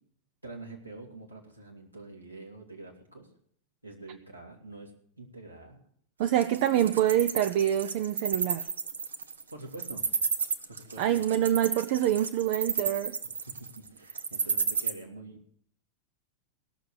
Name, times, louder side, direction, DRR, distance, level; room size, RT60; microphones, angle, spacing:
voice 1, 0.4-3.3 3.8-4.9 5.2-5.8 9.5-10.1 10.7-11.3 13.5-15.5, right 2 dB, 85° right, -1 dB, 2.6 m, -46 dB
voice 2, 6.2-8.7 11.0-13.2, right 11 dB, 50° right, 10 dB, 0.5 m, -26 dB
Wild animals, 6.3-14.9, right 5 dB, 70° right, 0.9 m, -31 dB
17.0 x 6.7 x 7.7 m, 0.63 s
figure-of-eight pair, 90°, 0 cm